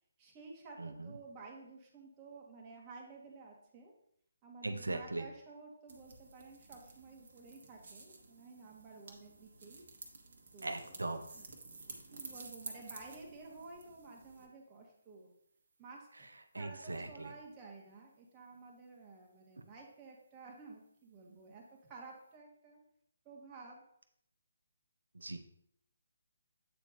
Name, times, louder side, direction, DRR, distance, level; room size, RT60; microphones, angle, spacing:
voice 1, 0.2-3.9 4.4-9.8 10.5-11.0 11.3-11.8 12.1-15.3 15.8-16.3 16.5-21.6 21.9-22.8 23.2-23.8, right 3 dB, 25° right, -1 dB, 1.6 m, -53 dB
voice 2, 0.8-1.1 4.6-5.2 10.6-11.2 16.5-17.3 25.1-25.4, right 2 dB, 85° right, 7 dB, 0.7 m, -39 dB
sound 1, 5.9-14.5, right 3 dB, 55° right, 1.4 m, -52 dB
8.5 x 4.4 x 2.7 m, 0.70 s
figure-of-eight pair, 145°, 0 cm